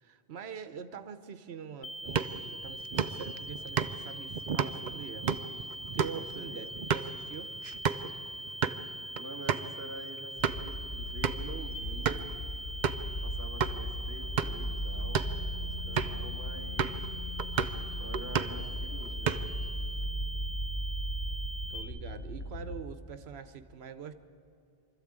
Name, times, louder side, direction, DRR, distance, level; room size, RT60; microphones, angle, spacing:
voice 1, 0.0-5.3 5.9-7.5 21.7-24.1, right 7 dB, 90° right, 11 dB, 1.1 m, -44 dB
sound 1, 1.8-21.8, right 1 dB, 75° left, 1.3 m, -42 dB
sound 2, 2.0-8.1 8.5-8.8 9.2-9.3 9.5-9.7 10.2-10.7 11.2-11.5 12.0-12.3 12.8-13.1 13.6-13.8 14.2-14.7 15.0-15.4 16.0-16.2 16.8-17.1 17.4-17.8 18.1-18.7 19.0-19.7, right 7 dB, 50° right, 0.7 m, -32 dB
voice 2, 6.1-6.7 9.0-12.3 13.2-17.0 18.0-19.5, right 2 dB, 15° right, 1 dB, 1.8 m, -47 dB
sound 3, 10.4-22.8, equal, 50° left, 1.9 m, -37 dB
24.5 x 13.5 x 8.7 m, 2.7 s
omnidirectional pair, 1.0 m